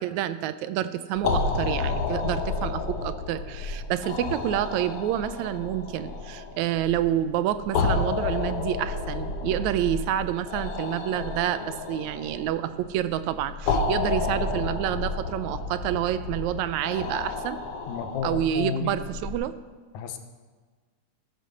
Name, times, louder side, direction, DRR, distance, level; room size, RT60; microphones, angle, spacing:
voice 1, 0.0-17.6 18.2-19.6, right 11 dB, 80° right, 12 dB, 1.9 m, -28 dB
sound 1, 1.2-19.3, left 4 dB, 60° left, 1.7 m, -31 dB
voice 2, 17.9-19.0 19.9-20.2, left 7 dB, 80° left, 7 dB, 2.3 m, -31 dB
16.5 x 7.5 x 6.3 m, 1.4 s
omnidirectional pair, 3.4 m